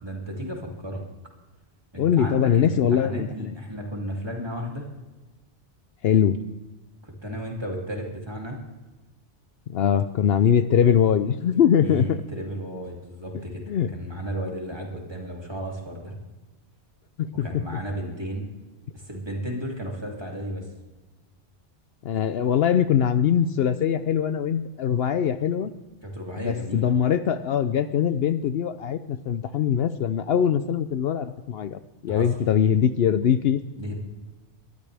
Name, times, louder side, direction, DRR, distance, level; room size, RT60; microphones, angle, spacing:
voice 1, 0.0-1.0 1.9-4.9 7.0-8.6 11.8-13.6 13.9-16.2 17.4-18.5 18.9-20.6 26.0-26.9 32.1-32.3 33.8-34.0, equal, 20° right, 0 dB, 2.9 m, -33 dB
voice 2, 2.0-3.6 6.0-6.4 9.7-12.2 13.7-13.9 17.2-17.8 22.0-25.7 26.4-33.6, left 8 dB, 65° left, 12 dB, 0.8 m, -22 dB
21.5 x 13.5 x 3.4 m, 1.1 s
omnidirectional pair, 1.2 m